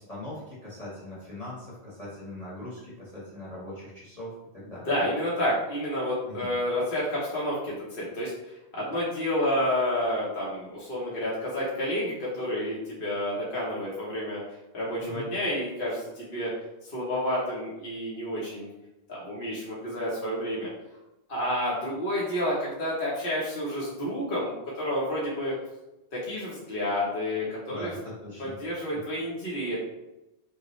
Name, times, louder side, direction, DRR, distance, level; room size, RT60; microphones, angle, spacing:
voice 1, 0.1-4.9 6.3-6.5 15.0-15.3 27.7-28.6, left 1 dB, 35° left, -8 dB, 1.3 m, -40 dB
voice 2, 4.9-14.4 14.7-16.5 16.8-18.7 19.1-20.7 21.3-25.5 26.1-27.9 28.4-29.8, left 1 dB, 55° left, -7 dB, 1.1 m, -30 dB
5.4 x 2.4 x 3.0 m, 0.97 s
omnidirectional pair, 1.2 m